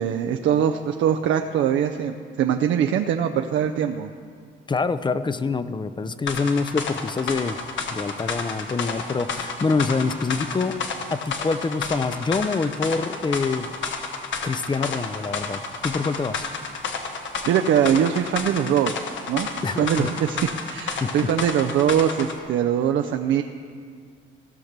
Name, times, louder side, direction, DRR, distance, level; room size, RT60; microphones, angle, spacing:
voice 1, 0.0-4.1 17.5-20.4 20.6-23.4, right 9 dB, 70° right, 5 dB, 0.5 m, -22 dB
voice 2, 4.7-7.6 7.9-10.8 11.1-13.7 14.4-16.5 19.6-20.1 21.0-21.1, left 4 dB, 25° left, 13 dB, 0.5 m, -25 dB
sound 1, 6.3-22.4, left 4 dB, 70° left, 1.3 m, -31 dB
16.5 x 5.9 x 6.6 m, 2.1 s
cardioid pair, 90°, 20 cm